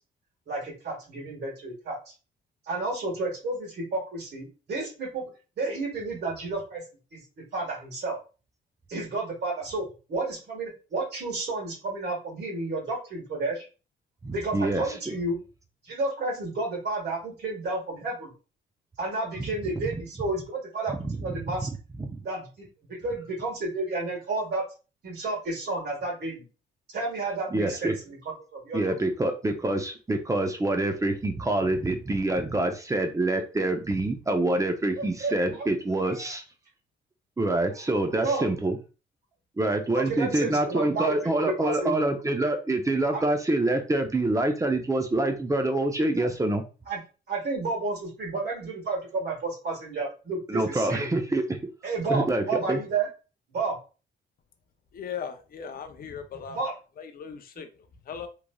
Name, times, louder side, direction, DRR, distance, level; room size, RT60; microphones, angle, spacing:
voice 1, 0.5-2.0 2.7-5.3 5.6-6.8 7.1-7.2 7.5-8.2 8.9-13.7 14.3-15.4 15.8-18.3 19.0-21.7 22.2-24.6 25.0-26.4 26.9-28.2 28.5-28.8 35.0-35.7 36.0-36.3 38.2-38.5 39.9-42.1 43.1-43.2 46.2-46.3 46.9-47.0 47.3-51.1 51.8-53.1 53.5-53.7 56.5-56.7, right 3 dB, 55° right, -1 dB, 1.4 m, -31 dB
voice 2, 14.2-15.1 19.4-19.5 20.9-21.2 21.6-21.7 22.0-22.2 27.5-28.0 28.7-36.4 37.4-38.8 39.6-46.6 50.5-51.7 52.1-52.8, right 2 dB, 15° right, 6 dB, 0.5 m, -26 dB
voice 3, 54.9-56.6 57.0-58.3, left 7 dB, 50° left, 7 dB, 0.5 m, -38 dB
3.0 x 2.5 x 2.2 m, 0.33 s
cardioid pair, 90°, 20 cm